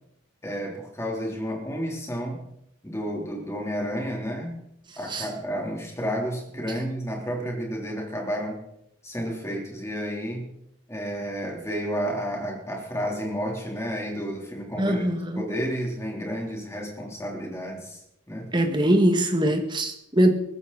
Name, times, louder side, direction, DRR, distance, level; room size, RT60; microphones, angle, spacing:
voice 1, 0.4-2.4 2.8-4.6 5.0-8.6 9.0-10.5 10.9-15.0 15.4-18.5, equal, 15° left, 0 dB, 3.6 m, -31 dB
voice 2, 14.8-15.4 18.5-20.3, right 1 dB, 20° right, 5 dB, 1.9 m, -22 dB
22.0 x 15.0 x 4.2 m, 0.79 s
head